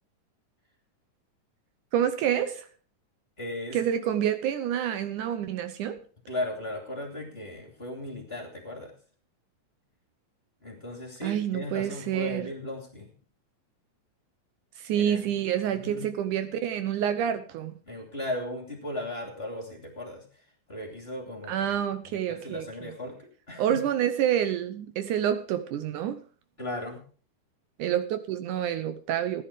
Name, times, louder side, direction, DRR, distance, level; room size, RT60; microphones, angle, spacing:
voice 1, 1.9-2.7 3.7-6.0 11.2-12.5 14.8-17.7 21.5-22.9 23.6-26.2 27.8-29.4, right 10 dB, 75° right, 10 dB, 2.3 m, -28 dB
voice 2, 3.4-3.8 6.3-8.9 10.6-13.1 14.9-15.2 15.7-16.1 17.9-23.8 26.6-27.0, left 1 dB, 20° left, 2 dB, 2.9 m, -37 dB
15.0 x 10.5 x 5.0 m, 0.41 s
omnidirectional pair, 3.8 m